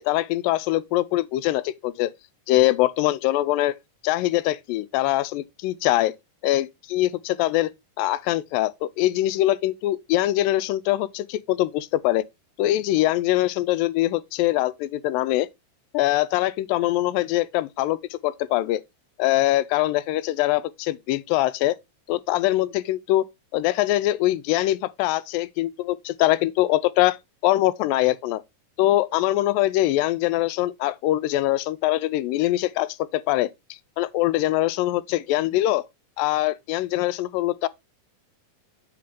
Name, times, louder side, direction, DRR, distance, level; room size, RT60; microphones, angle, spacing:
voice 1, 0.0-2.1 2.5-3.7 4.0-6.1 6.4-7.7 8.0-12.2 12.6-15.5 15.9-18.8 19.2-21.8 22.1-23.3 23.5-27.2 27.4-28.4 28.8-33.5 34.0-35.8 36.2-37.7, left 15 dB, 85° left, 2.3 m, -23 dB
8.5 x 3.7 x 5.0 m
omnidirectional pair, 3.9 m